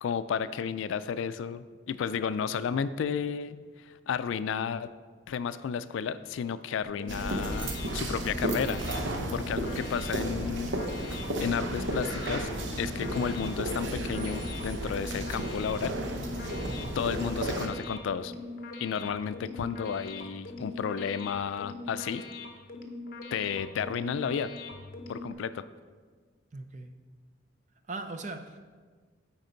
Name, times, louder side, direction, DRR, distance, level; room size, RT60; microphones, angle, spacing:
voice 1, 0.0-3.6 3.9-4.9 5.3-8.8 9.3-10.7 11.0-15.9 16.4-16.5 17.0-18.3 18.8-22.2 23.3-24.5 25.1-25.6, left 7 dB, 80° left, 14 dB, 0.3 m, -32 dB
sound 1, 6.8-25.3, left 2 dB, 45° left, 0.8 m, -42 dB
sound 2, 7.1-17.7, right 1 dB, 75° right, 0.8 m, -33 dB
voice 2, 16.5-16.8 26.5-26.9 27.9-28.6, right 2 dB, 40° right, 7 dB, 0.5 m, -39 dB
9.3 x 4.5 x 3.9 m, 1.5 s
head